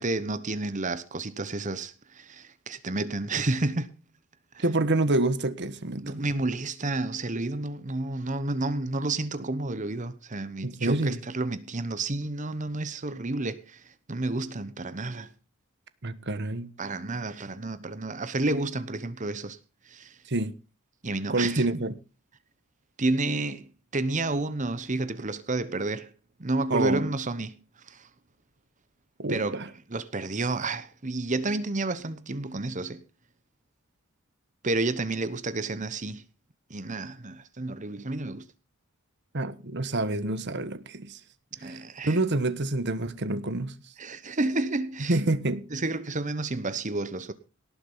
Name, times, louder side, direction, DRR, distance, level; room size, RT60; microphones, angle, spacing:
voice 1, 0.0-3.9 4.5-4.6 6.0-15.3 16.8-19.6 19.9-20.2 21.0-21.8 23.0-26.1 26.4-27.5 27.9-28.1 29.3-33.0 34.6-36.2 36.7-38.4 41.6-42.2 44.0-45.2 45.7-47.3, right 2 dB, 35° right, 1.0 m, -30 dB
voice 2, 4.6-6.2 10.6-11.2 16.0-16.7 20.3-20.5 21.3-22.0 26.7-27.1 29.2-29.7 39.3-41.2 41.6-41.8 42.0-43.8 45.1-45.7, right 2 dB, 50° right, 1.3 m, -27 dB
18.0 x 7.4 x 5.6 m
head